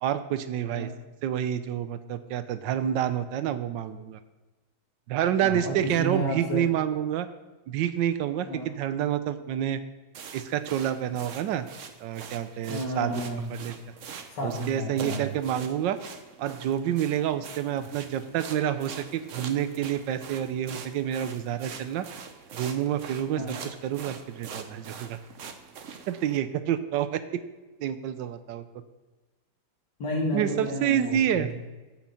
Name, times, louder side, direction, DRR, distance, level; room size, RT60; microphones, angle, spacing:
voice 1, 0.0-0.9 1.2-4.2 5.1-7.3 7.7-9.8 10.3-11.6 12.0-13.1 13.5-13.7 14.4-16.0 16.4-22.0 22.5-23.4 23.8-25.2 26.1-27.4 27.8-28.6 30.3-31.5, right 10 dB, 85° right, 12 dB, 1.4 m, -28 dB
voice 2, 5.4-6.7 8.5-8.7 12.7-13.6 14.3-15.3 23.4-23.6 30.0-31.6, equal, 75° left, -1 dB, 2.8 m, -31 dB
sound 1, 10.1-26.4, right 6 dB, 55° right, 1.0 m, -44 dB
8.5 x 8.0 x 5.6 m, 1.2 s
omnidirectional pair, 1.9 m